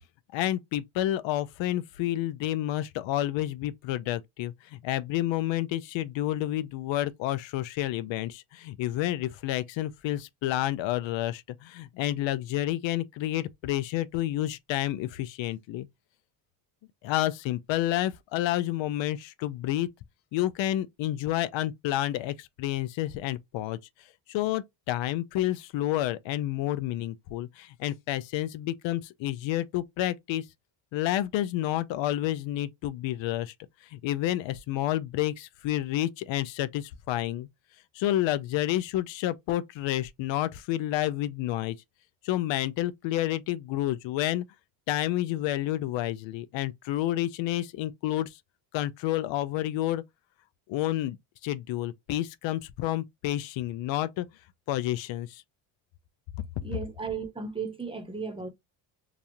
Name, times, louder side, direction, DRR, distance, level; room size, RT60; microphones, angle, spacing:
voice 1, 0.3-15.9 17.0-19.9 20.3-23.8 24.3-30.4 30.9-33.5 33.9-37.5 37.9-41.8 42.2-44.4 44.9-48.4 48.7-50.0 50.7-51.2 51.4-54.3 54.7-55.4, left 14 dB, 75° left, 0.6 m, -29 dB
voice 2, 56.6-58.5, right 5 dB, 10° right, 0.8 m, -35 dB
3.0 x 2.4 x 2.6 m
cardioid pair, 100°, 46 cm